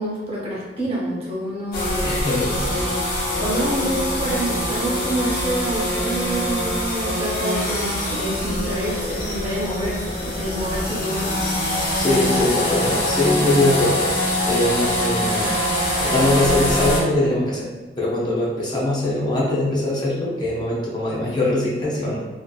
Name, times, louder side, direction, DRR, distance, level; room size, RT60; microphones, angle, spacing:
voice 1, 0.0-2.1 3.0-11.5 12.1-12.5, right 1 dB, 35° right, -6 dB, 0.7 m, -27 dB
sound 1, 1.7-17.0, left 1 dB, 60° left, 0.8 m, -24 dB
voice 2, 2.0-2.6 11.7-14.1 14.4-15.5 16.0-17.7 18.0-22.1, left 1 dB, 25° left, -6 dB, 0.5 m, -22 dB
2.5 x 2.4 x 2.2 m, 1.2 s
head